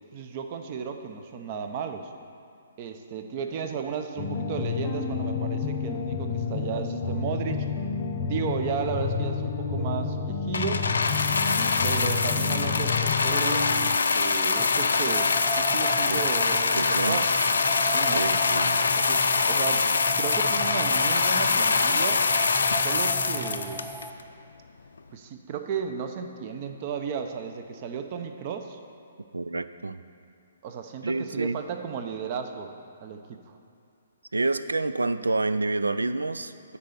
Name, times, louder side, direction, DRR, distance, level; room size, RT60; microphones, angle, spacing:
voice 1, 0.1-2.1 2.8-7.7 8.2-10.9 11.8-17.3 17.9-18.3 19.0-22.2 22.8-23.9 25.1-28.8 30.6-32.7 33.0-33.6, right 7 dB, 40° right, 6 dB, 0.7 m, -34 dB
sound 1, 4.2-14.0, left 5 dB, 35° left, 0.8 m, -30 dB
sound 2, 10.5-24.2 25.0-25.1, left 4 dB, 75° left, 0.5 m, -24 dB
sound 3, 14.6-24.1, equal, ahead, 0.4 m, -37 dB
voice 2, 16.7-17.2 18.1-19.0 29.3-30.0 31.0-31.6 34.3-36.8, right 3 dB, 90° right, 13 dB, 0.4 m, -28 dB
10.0 x 4.1 x 6.7 m, 2.6 s
hypercardioid pair, 135°, 0 cm